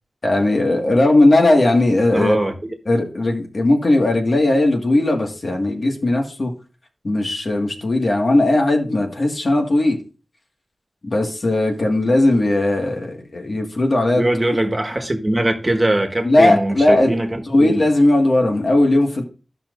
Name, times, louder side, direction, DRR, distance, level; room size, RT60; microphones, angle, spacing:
voice 1, 0.2-2.4 2.9-6.5 7.0-10.0 11.0-14.2 16.2-17.1 17.5-19.2, left 2 dB, 60° left, 1.9 m, -17 dB
voice 2, 2.1-2.5 3.0-3.1 14.2-17.8, right 1 dB, 25° right, 1.6 m, -21 dB
14.5 x 5.8 x 2.6 m
wide cardioid pair, 65°, 0 cm